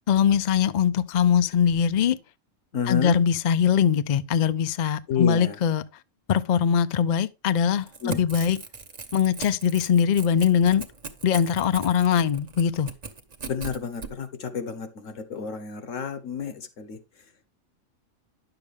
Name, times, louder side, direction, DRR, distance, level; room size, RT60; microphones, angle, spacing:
voice 1, 0.1-2.2 2.9-5.8 6.3-8.6 9.1-10.8 11.2-12.9, left 8 dB, 55° left, 0.5 m, -22 dB
voice 2, 2.7-3.2 5.1-5.6 8.0-8.2 13.5-17.0, left 6 dB, 75° left, 1.5 m, -30 dB
Crackle / Tearing, 7.7-14.1, right 4 dB, 35° right, 1.0 m, -39 dB
10.5 x 6.9 x 3.4 m
omnidirectional pair, 1.3 m